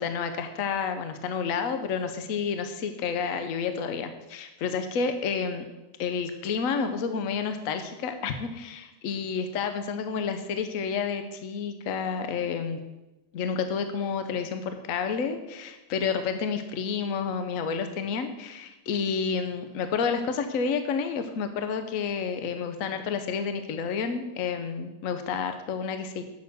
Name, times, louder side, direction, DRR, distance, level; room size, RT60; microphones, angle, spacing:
voice 1, 0.0-5.6 6.0-12.8 13.3-26.2, left 6 dB, 65° left, 8 dB, 0.8 m, -30 dB
8.1 x 6.6 x 6.7 m, 1.0 s
omnidirectional pair, 2.2 m